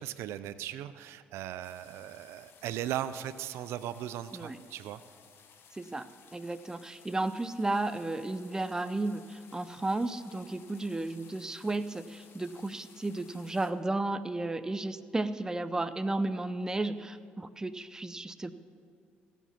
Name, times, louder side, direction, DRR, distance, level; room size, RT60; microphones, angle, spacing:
voice 1, 0.0-5.0, right 12 dB, 75° right, 14 dB, 0.4 m, -38 dB
sound 1, 1.6-13.7, left 6 dB, 65° left, 1.2 m, -58 dB
voice 2, 5.8-18.5, right 2 dB, 15° right, 12 dB, 0.6 m, -33 dB
16.0 x 7.2 x 5.8 m, 2.2 s
supercardioid pair, 75°, 4 cm